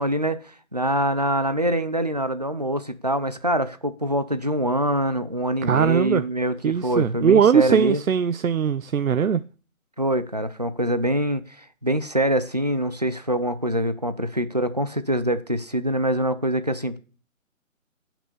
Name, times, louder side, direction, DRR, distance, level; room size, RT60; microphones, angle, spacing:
voice 1, 0.0-8.0 10.0-17.0, right 1 dB, 30° right, 0.5 m, -24 dB
voice 2, 5.6-6.2 6.6-9.4, right 7 dB, 85° right, 0.8 m, -20 dB
14.5 x 6.1 x 6.7 m
hypercardioid pair, 175°, 40 cm